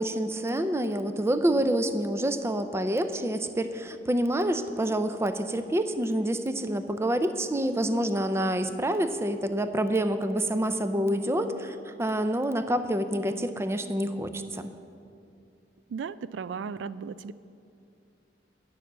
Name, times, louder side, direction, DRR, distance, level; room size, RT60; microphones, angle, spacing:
voice 1, 0.0-14.6, right 1 dB, 15° right, 9 dB, 0.5 m, -27 dB
voice 2, 15.9-17.3, right 6 dB, 85° right, 15 dB, 0.3 m, -35 dB
11.0 x 6.9 x 7.4 m, 2.6 s
head